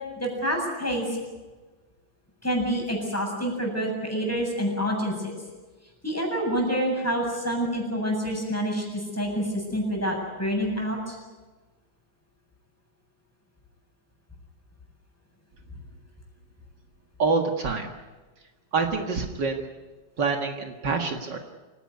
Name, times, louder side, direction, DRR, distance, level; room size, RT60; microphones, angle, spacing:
voice 1, 0.2-1.2 2.4-5.3 6.0-11.2, equal, 5° left, 0 dB, 7.7 m, -27 dB
voice 2, 17.2-17.9 18.7-19.7 20.2-21.4, right 4 dB, 65° right, 4 dB, 2.4 m, -26 dB
27.0 x 17.5 x 9.6 m, 1.3 s
omnidirectional pair, 2.1 m